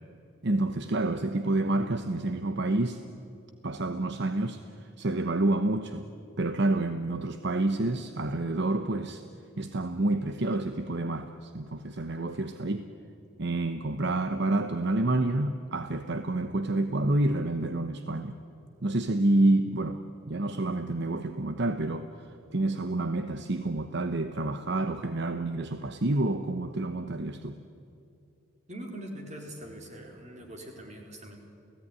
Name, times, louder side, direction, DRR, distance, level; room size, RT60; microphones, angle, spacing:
voice 1, 0.4-3.0 3.6-6.1 6.4-9.2 9.6-12.9 13.4-18.4 18.8-20.0 20.3-27.6, right 2 dB, 55° right, 9 dB, 1.0 m, -28 dB
voice 2, 28.7-31.4, right 1 dB, 35° right, 2 dB, 4.3 m, -42 dB
29.5 x 17.5 x 9.8 m, 2.7 s
head